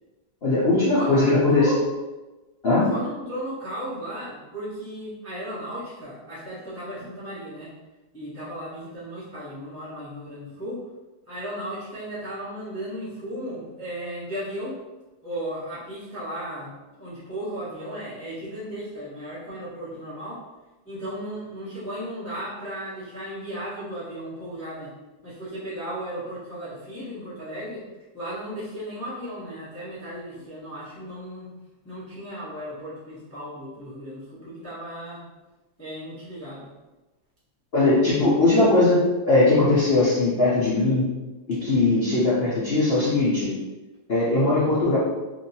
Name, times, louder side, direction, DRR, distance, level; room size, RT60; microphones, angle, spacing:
voice 1, 0.4-1.7 2.6-2.9 37.7-39.0 39.3-41.1 41.5-43.5 44.1-45.0, left 2 dB, 75° left, -9 dB, 0.5 m, -20 dB
voice 2, 0.9-1.8 2.9-7.7 8.1-10.8 11.3-14.8 15.2-20.4 20.8-24.9 25.2-27.9 28.1-31.5 31.8-35.2 35.8-36.7, equal, 20° left, -11 dB, 0.4 m, -35 dB
2.9 x 2.6 x 2.7 m, 1.1 s
omnidirectional pair, 2.0 m